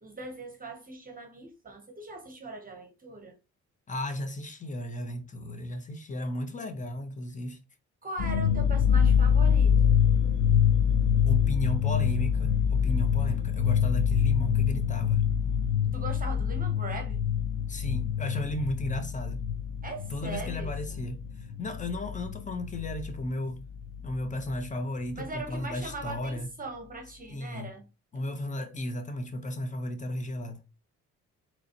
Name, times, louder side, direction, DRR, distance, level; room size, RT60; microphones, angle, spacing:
voice 1, 0.0-3.4 8.0-9.7 15.9-17.2 19.8-21.0 25.1-27.8, right 2 dB, 30° right, 0.9 m, -40 dB
voice 2, 3.9-7.6 11.3-15.2 17.7-19.4 20.1-23.7 24.0-26.5 27.3-27.7 28.1-30.6, left 1 dB, 25° left, 0.8 m, -35 dB
sound 1, 8.2-23.3 23.5-24.7 25.0-25.1 25.5-26.1, left 8 dB, 75° left, 0.6 m, -26 dB
3.9 x 3.1 x 2.8 m
cardioid pair, 90°, 30 cm